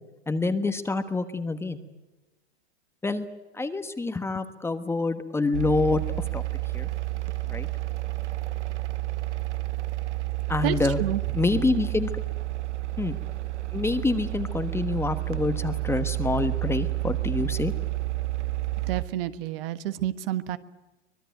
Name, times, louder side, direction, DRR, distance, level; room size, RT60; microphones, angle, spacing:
voice 1, 0.3-1.8 3.0-3.3 3.5-6.0 6.3-6.4 6.7-6.9 7.5-7.7 10.5-11.0 11.3-12.1 13.0-13.1 13.7-17.7, left 3 dB, 5° left, 10 dB, 1.2 m, -26 dB
sound 1, 5.5-19.0, right 19 dB, 85° right, 1.1 m, -30 dB
voice 2, 10.6-11.2 18.9-20.6, right 13 dB, 55° right, 12 dB, 1.4 m, -29 dB
24.5 x 19.5 x 9.3 m, 1.1 s
hypercardioid pair, 130°, 34 cm